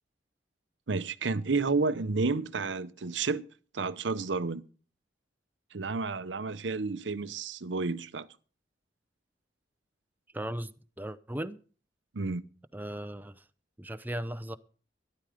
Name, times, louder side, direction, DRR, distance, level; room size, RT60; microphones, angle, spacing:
voice 1, 0.9-3.4 3.7-4.6 5.7-8.3 12.1-12.4, right 4 dB, 90° right, 0.8 m, -31 dB
voice 2, 10.3-11.6 12.7-13.4 13.8-14.6, right 1 dB, 10° right, 0.7 m, -37 dB
12.5 x 11.5 x 5.0 m
head